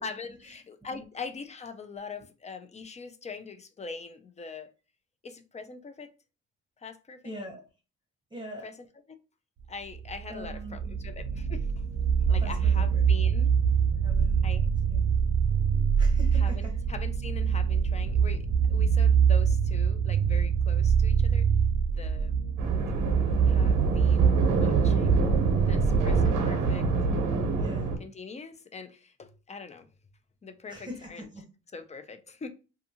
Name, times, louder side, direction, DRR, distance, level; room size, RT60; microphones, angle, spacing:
voice 1, 0.0-4.7 5.2-6.1 6.8-7.3 8.6-8.8 9.1-9.2 9.7-11.9 12.3-13.5 14.4-14.7 16.3-21.5 21.9-22.3 23.4-25.3 25.6-26.8 28.0-29.9 30.4-31.3 31.7-32.5, left 4 dB, 25° left, 0.4 m, -42 dB
voice 2, 7.2-7.6 8.3-8.7 10.3-11.1 12.4-13.0 14.0-14.5 14.9-15.1 16.0-16.8 26.3-26.7 27.6-27.9 30.7-31.4, equal, 15° right, 0.8 m, -42 dB
sound 1, 9.9-26.3, right 7 dB, 55° right, 0.5 m, -24 dB
sound 2, 22.6-28.0, right 3 dB, 85° right, 0.8 m, -27 dB
2.6 x 2.4 x 2.7 m
cardioid pair, 90°, 30 cm